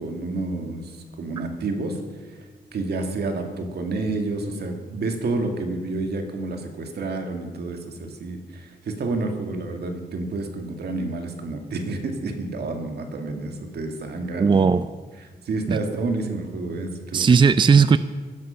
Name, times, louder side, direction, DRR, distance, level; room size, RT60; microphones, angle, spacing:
voice 1, 0.0-2.0 2.7-14.6 15.2-17.4, right 3 dB, 80° right, 5 dB, 2.0 m, -29 dB
voice 2, 14.4-14.9 15.7-15.8 17.1-18.0, right 5 dB, 30° right, 13 dB, 0.4 m, -16 dB
16.0 x 11.0 x 5.6 m, 1.4 s
cardioid pair, 105°, 17 cm